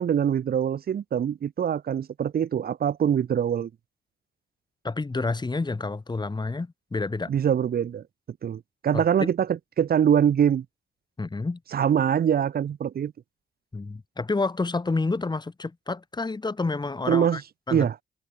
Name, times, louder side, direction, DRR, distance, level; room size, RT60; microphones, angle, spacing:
voice 1, 0.0-3.7 7.3-8.0 8.4-10.7 11.7-13.1 17.1-17.4 17.7-18.0, right 8 dB, 50° right, 0.7 m, -23 dB
voice 2, 4.8-7.3 8.9-9.3 11.2-11.6 13.7-17.4 17.7-17.9, left 3 dB, 20° left, 1.4 m, -29 dB
cardioid pair, 70°, 20 cm